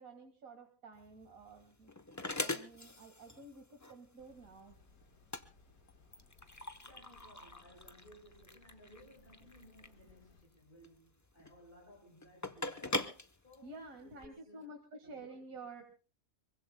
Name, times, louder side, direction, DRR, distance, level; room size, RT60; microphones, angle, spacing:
voice 1, 0.0-1.9 2.2-4.8 13.6-15.8, right 3 dB, 70° right, 2.3 m, -51 dB
sound 1, 1.0-14.3, left 2 dB, 15° left, 0.6 m, -43 dB
sound 2, 4.2-10.4, left 3 dB, 85° left, 1.9 m, -65 dB
voice 2, 6.8-13.1 13.4-14.7 15.0-15.3, equal, 35° left, 6.4 m, -60 dB
24.5 x 23.0 x 2.2 m
omnidirectional pair, 1.5 m